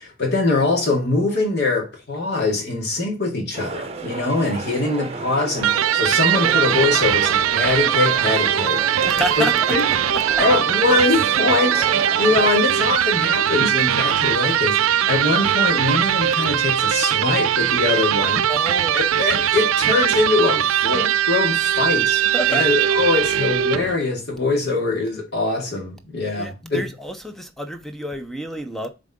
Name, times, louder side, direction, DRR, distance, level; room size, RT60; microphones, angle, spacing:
voice 1, 0.0-9.8 10.4-18.5 18.9-22.2 22.5-26.8, left 3 dB, 55° left, 2.5 m, -23 dB
sound 1, 3.5-12.5, right 3 dB, 30° right, 0.8 m, -32 dB
voice 2, 4.8-5.3 9.1-9.6 10.3-10.4 18.5-19.0 22.3-22.6 26.3-28.9, equal, ahead, 0.6 m, -29 dB
Electric guitar, 5.6-24.0, right 10 dB, 85° right, 0.4 m, -20 dB
7.1 x 3.8 x 3.7 m
head